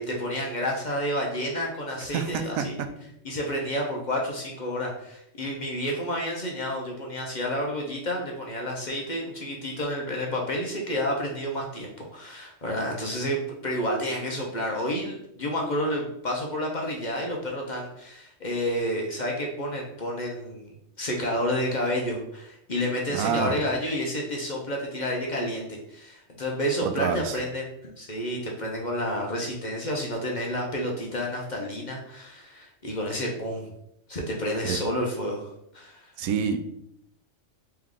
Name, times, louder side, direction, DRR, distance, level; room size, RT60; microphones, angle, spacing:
voice 1, 0.0-2.8 3.2-20.7 21.0-27.7 28.0-33.7 34.1-36.1, equal, 45° left, -1 dB, 0.7 m, -30 dB
voice 2, 2.1-2.6 23.1-23.6 26.8-27.4 34.6-34.8 36.2-36.6, right 7 dB, 85° right, 7 dB, 1.0 m, -27 dB
3.5 x 3.3 x 3.6 m, 0.75 s
omnidirectional pair, 1.4 m